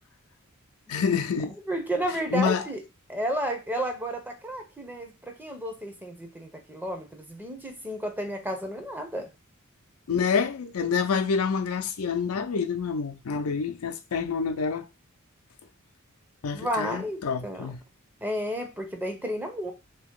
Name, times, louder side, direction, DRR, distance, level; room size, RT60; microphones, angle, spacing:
voice 1, 0.9-1.6 2.3-2.7 10.1-14.9 16.4-17.8, left 6 dB, 80° left, 0.5 m, -27 dB
voice 2, 1.7-2.8 3.1-9.3 16.5-17.7 18.2-19.7, right 1 dB, 10° right, 0.6 m, -32 dB
2.9 x 2.8 x 3.6 m
head